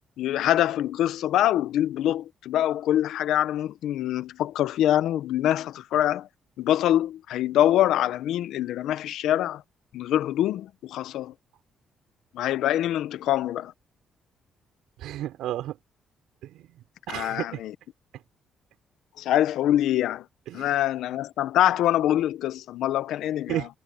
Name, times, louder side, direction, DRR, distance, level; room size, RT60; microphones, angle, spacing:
voice 1, 0.2-6.3 6.6-9.6 9.9-11.3 12.3-13.7 17.1-17.7 19.2-20.3 20.5-23.6, left 12 dB, 80° left, 0.9 m, -24 dB
voice 2, 15.0-15.8 16.4-17.6 18.1-18.2 20.5-20.8 23.5-23.7, right 13 dB, 85° right, 4.9 m, -33 dB
cardioid pair, 90°, 0 cm